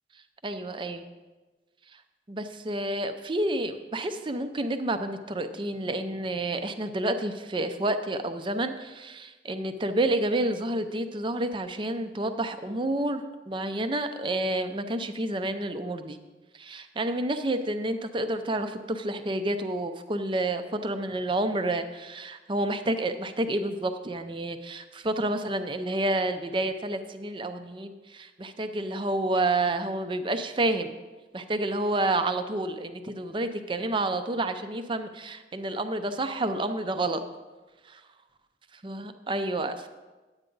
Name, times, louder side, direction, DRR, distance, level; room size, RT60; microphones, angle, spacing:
voice 1, 0.4-1.0 1.9-2.0 2.3-16.2 16.5-30.9 31.3-37.2 37.8-38.0 38.8-39.9, right 1 dB, 30° right, 9 dB, 0.5 m, -29 dB
10.0 x 8.8 x 3.9 m, 1.2 s
head